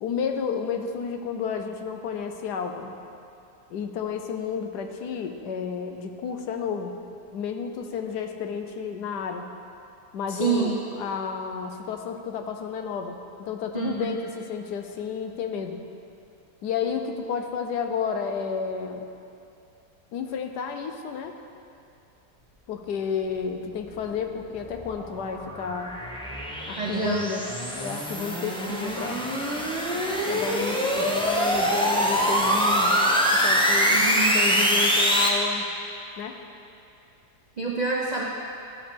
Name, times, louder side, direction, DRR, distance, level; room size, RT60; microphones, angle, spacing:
voice 1, 0.0-3.0 3.7-7.0 7.3-9.5 10.1-15.8 16.6-19.1 20.1-21.3 22.7-26.0 26.7-27.5 27.7-29.2 30.2-34.1 34.3-35.7 36.2-36.4, left 6 dB, 75° left, 5 dB, 1.2 m, -31 dB
voice 2, 10.3-10.8 13.7-14.1 26.8-27.3 33.9-34.3 37.6-38.2, right 5 dB, 80° right, -2 dB, 0.3 m, -27 dB
sound 1, 24.0-35.3, equal, 10° left, 0.3 m, -24 dB
12.5 x 5.2 x 5.2 m, 2.6 s
omnidirectional pair, 1.8 m